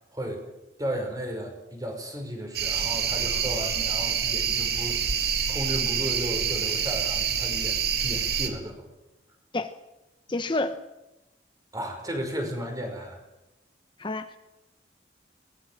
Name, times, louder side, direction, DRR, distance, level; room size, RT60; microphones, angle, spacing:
voice 1, 0.1-0.5 0.8-5.0 5.5-8.8 11.7-13.2, equal, 20° right, 4 dB, 5.4 m, -34 dB
sound 1, 2.5-8.5, right 7 dB, 65° right, 2.6 m, -27 dB
voice 2, 10.3-10.8 14.0-14.4, left 2 dB, 25° left, 9 dB, 0.9 m, -29 dB
22.5 x 19.5 x 7.6 m, 0.98 s
head